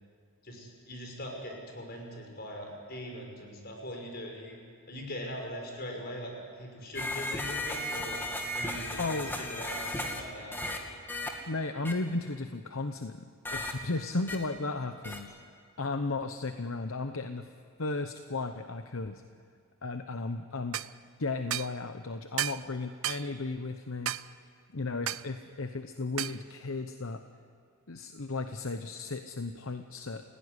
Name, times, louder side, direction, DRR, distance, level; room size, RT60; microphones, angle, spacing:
voice 1, 0.4-4.6 4.9-8.2 8.5-9.2 9.5-10.6 14.7-14.8, equal, 50° left, 1 dB, 5.9 m, -41 dB
sound 1, 6.9-10.2 10.5-10.8 11.1-11.3 11.8-11.9 13.4-13.7 14.3-14.4 15.0-15.2, left 1 dB, 10° left, 2.3 m, -35 dB
voice 2, 9.0-9.3 11.5-15.3 15.8-17.5 17.8-19.2 19.8-20.8 21.2-24.1 24.7-27.2 27.9-30.2, left 3 dB, 70° left, 8 dB, 1.0 m, -35 dB
sound 2, 20.7-20.9 21.5-21.7 22.4-22.6 23.0-23.3 24.1-24.3 25.1-25.3 26.2-26.4, right 12 dB, 75° right, 0.6 m, -33 dB
29.5 x 17.0 x 9.8 m, 2.1 s
head